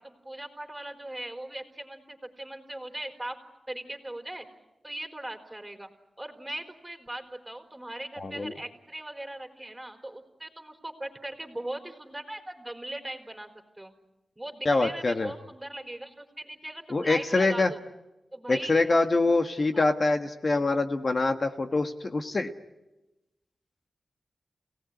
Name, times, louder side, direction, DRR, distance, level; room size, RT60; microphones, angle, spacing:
voice 1, 0.0-3.4 3.7-4.5 4.8-5.9 6.2-13.5 13.8-13.9 14.4-17.8 18.3-18.9 19.7-19.9, right 1 dB, 15° right, 6 dB, 4.1 m, -39 dB
voice 2, 8.2-8.5 14.6-15.3 16.9-17.7 18.5-22.5, left 3 dB, 45° left, 6 dB, 1.5 m, -25 dB
28.5 x 18.5 x 9.7 m, 1.0 s
wide cardioid pair, 75°, 0 cm